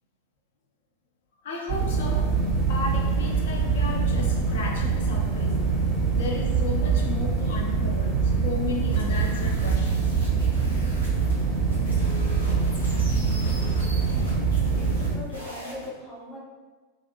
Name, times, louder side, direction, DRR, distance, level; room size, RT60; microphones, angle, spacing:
voice 1, 1.4-2.3 2.7-5.6 6.1-8.2 8.4-10.1, left 3 dB, 55° left, 0 dB, 0.5 m, -34 dB
sound 1, 1.7-15.2, right 5 dB, 30° right, 0.5 m, -24 dB
sound 2, 8.8-15.9, left 2 dB, 85° left, 0.9 m, -39 dB
voice 2, 14.8-16.4, left 1 dB, 20° left, -6 dB, 0.7 m, -40 dB
2.5 x 2.4 x 2.7 m, 1.3 s
figure-of-eight pair, 90°, 0 cm